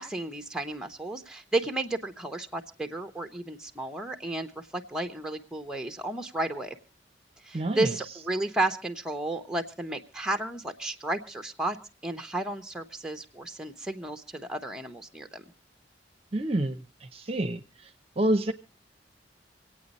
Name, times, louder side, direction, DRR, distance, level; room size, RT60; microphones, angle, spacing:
voice 1, 0.0-6.8 7.4-11.8 12.0-15.4, right 2 dB, 5° right, 6 dB, 0.9 m, -33 dB
voice 2, 7.5-7.9 16.3-16.8 17.1-17.6 18.2-18.5, right 1 dB, 35° right, 8 dB, 0.8 m, -27 dB
26.0 x 8.9 x 4.2 m, 0.34 s
head